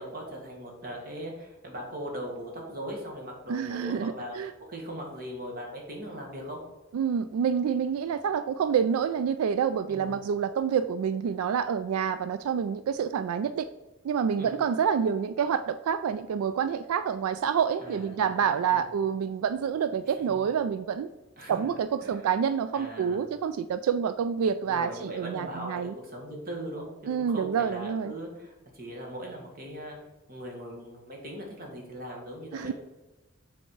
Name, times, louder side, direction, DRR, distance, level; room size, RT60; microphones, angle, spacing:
voice 1, 0.0-4.3 4.7-6.6 9.9-10.2 14.4-14.6 17.8-18.9 20.3-20.4 21.4-21.7 22.0-22.3 22.7-23.2 24.6-26.9 27.2-30.0 30.3-32.7, right 1 dB, 40° right, 0 dB, 1.7 m, -39 dB
voice 2, 3.5-4.5 6.9-13.7 14.0-21.1 21.5-25.9 27.1-28.1 32.5-32.7, right 7 dB, 90° right, 11 dB, 0.3 m, -28 dB
7.1 x 4.3 x 4.5 m, 1.1 s
head